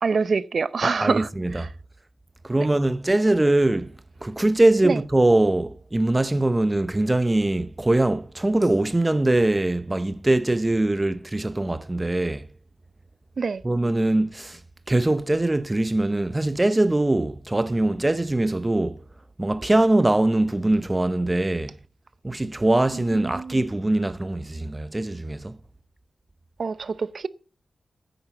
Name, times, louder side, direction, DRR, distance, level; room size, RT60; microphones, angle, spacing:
voice 1, 0.0-1.3 1.5-1.7 4.8-5.0 13.4-13.6 22.9-23.6 26.6-27.3, right 5 dB, 50° right, 0.7 m, -25 dB
voice 2, 0.8-1.7 2.4-3.9 4.2-12.5 13.6-14.6 14.9-19.0 19.4-21.8 22.2-25.6, right 2 dB, 15° right, 0.7 m, -22 dB
9.9 x 9.3 x 7.0 m
wide cardioid pair, 155°, 0 cm